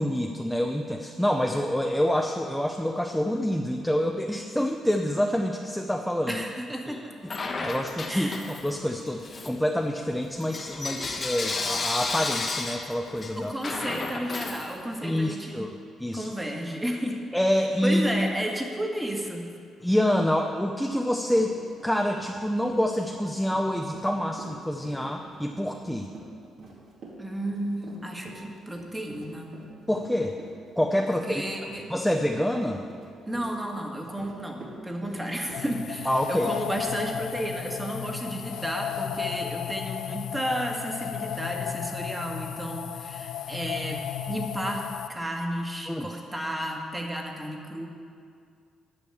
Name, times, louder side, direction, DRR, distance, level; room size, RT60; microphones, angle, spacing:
voice 1, 0.0-6.4 6.9-7.0 7.6-13.5 15.0-16.3 17.3-18.3 19.8-21.6 21.8-26.1 29.9-30.4 30.8-31.4 31.9-32.8 36.1-36.5 45.9-46.1, equal, 5° left, 2 dB, 0.6 m, -27 dB
voice 2, 6.3-7.2 8.1-8.5 13.4-15.7 16.1-17.2 17.8-19.5 27.2-29.5 31.1-31.9 33.2-47.9, right 1 dB, 15° right, 1 dB, 1.6 m, -32 dB
Bell / Coin (dropping), 7.3-8.8 9.2-15.2, left 3 dB, 35° left, 1.2 m, -33 dB
Run, 20.9-21.0 21.3-37.3 37.7-37.8 38.2-38.4, right 3 dB, 65° right, 2.5 m, -46 dB
sound 1, 35.5-45.1, left 9 dB, 75° left, 0.4 m, -34 dB
10.0 x 6.3 x 8.6 m, 2.3 s
cardioid pair, 90°, 0 cm